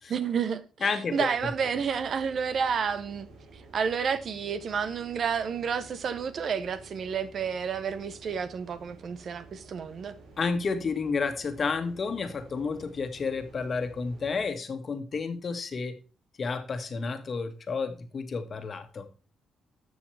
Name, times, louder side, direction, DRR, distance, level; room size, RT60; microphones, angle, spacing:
voice 1, 0.1-3.3 3.7-10.1, right 6 dB, 55° right, 0.9 m, -30 dB
voice 2, 0.8-1.5 10.4-16.0 16.4-19.1, left 4 dB, 45° left, 1.6 m, -31 dB
sound 1, 1.3-14.5, right 2 dB, 85° right, 3.6 m, -52 dB
13.5 x 6.4 x 3.4 m
cardioid pair, 90°, 0 cm